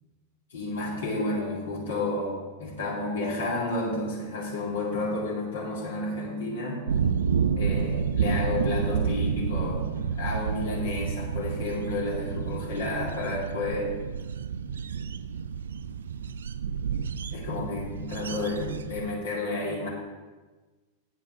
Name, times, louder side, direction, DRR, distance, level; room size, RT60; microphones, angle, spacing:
voice 1, 0.5-6.9 7.6-13.9 17.3-19.9, left 2 dB, 65° left, -3 dB, 2.3 m, -31 dB
sound 1, 6.9-19.1, right 7 dB, 65° right, 0.4 m, -30 dB
8.7 x 6.8 x 5.7 m, 1.3 s
figure-of-eight pair, 90°, 0 cm